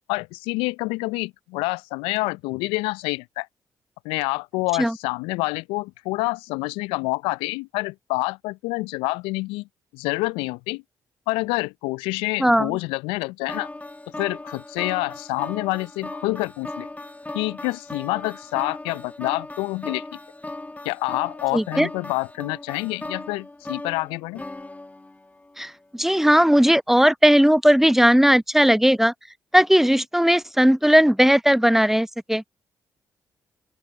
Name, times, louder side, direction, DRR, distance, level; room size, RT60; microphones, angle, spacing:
voice 1, 0.1-3.5 4.0-9.7 9.9-10.8 11.3-13.7 14.2-16.9 17.3-20.0 20.8-24.4, left 24 dB, 75° left, 0.4 m, -27 dB
voice 2, 12.4-12.7 21.5-21.9 25.6-29.1 29.5-32.4, equal, 5° right, 0.9 m, -17 dB
sound 1, 13.5-25.7, left 2 dB, 15° left, 2.1 m, -38 dB
open air
hypercardioid pair, 40°, 9 cm